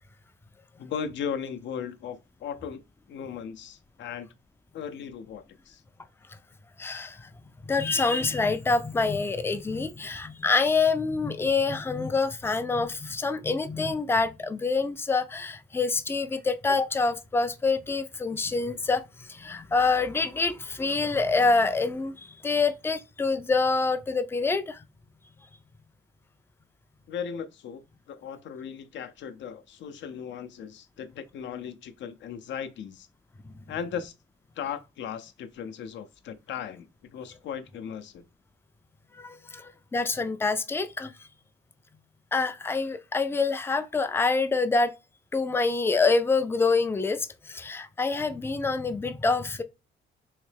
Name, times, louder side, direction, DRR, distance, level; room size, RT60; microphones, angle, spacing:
voice 1, 0.8-2.8 3.1-4.3 4.7-5.8 27.1-33.1 33.7-34.1 34.6-36.9 37.1-38.2, left 7 dB, 65° left, 0.6 m, -37 dB
voice 2, 6.8-7.3 7.6-24.8 39.1-41.1 42.3-44.9 45.3-49.6, left 4 dB, 10° left, 0.3 m, -26 dB
3.2 x 2.9 x 3.2 m
cardioid pair, 90°, 20 cm